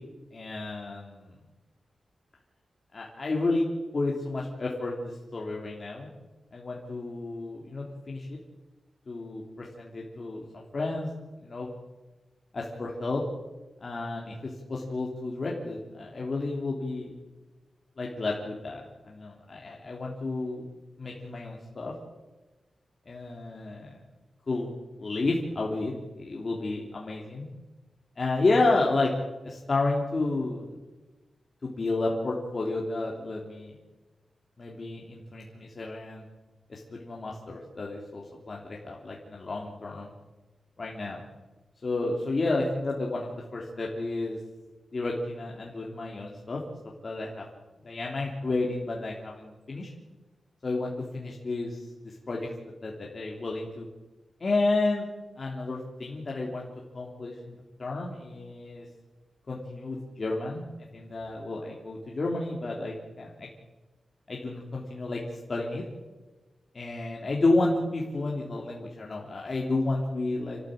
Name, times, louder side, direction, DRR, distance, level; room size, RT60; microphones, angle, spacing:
voice 1, 0.3-1.3 2.9-3.7 3.9-6.1 6.5-8.4 9.1-11.1 11.4-11.7 12.5-13.2 13.8-17.1 18.0-20.6 21.0-21.9 23.1-23.9 24.5-24.7 25.0-25.9 26.2-27.4 28.2-29.1 29.4-30.7 31.6-33.7 34.6-36.2 36.7-40.1 40.8-41.2 41.8-44.4 44.9-46.6 47.0-47.4 47.8-49.9 50.6-52.5 52.8-53.8 54.4-55.1 55.4-56.7 56.9-58.8 59.5-60.6 60.9-63.5 64.3-65.8 66.7-70.6, left 2 dB, 45° left, -2 dB, 3.2 m, -31 dB
28.5 x 13.0 x 8.9 m, 1.2 s
wide cardioid pair, 100°, 0 cm